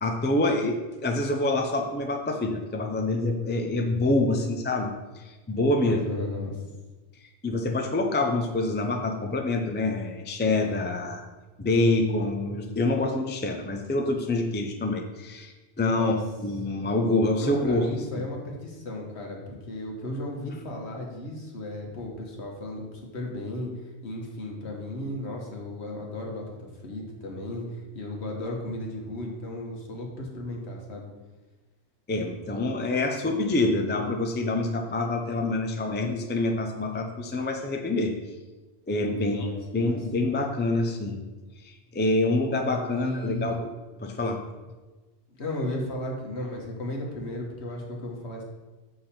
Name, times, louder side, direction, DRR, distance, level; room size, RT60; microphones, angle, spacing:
voice 1, 0.0-6.0 7.4-11.3 11.6-16.1 16.4-18.2 32.1-38.1 38.9-41.2 41.6-43.7 44.0-44.4, left 2 dB, 15° left, 4 dB, 0.4 m, -26 dB
voice 2, 5.8-6.6 15.8-16.2 17.4-23.7 24.0-31.1 39.1-40.0 42.9-43.6 45.4-48.4, left 1 dB, 65° left, 0 dB, 1.6 m, -35 dB
7.2 x 5.6 x 4.4 m, 1.2 s
omnidirectional pair, 1.2 m